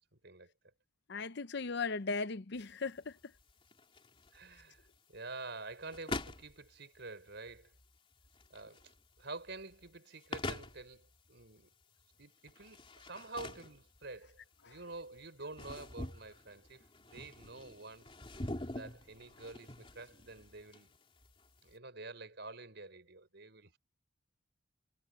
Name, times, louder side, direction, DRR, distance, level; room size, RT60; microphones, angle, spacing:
voice 1, 1.1-3.3 14.6-14.8, left 4 dB, 55° left, 0.7 m, -38 dB
sound 1, 2.6-21.7, left 2 dB, 25° left, 3.3 m, -47 dB
voice 2, 4.3-7.7 8.5-8.8 9.2-11.7 12.2-18.1 18.7-20.9 21.6-23.7, right 3 dB, 60° right, 5.4 m, -48 dB
head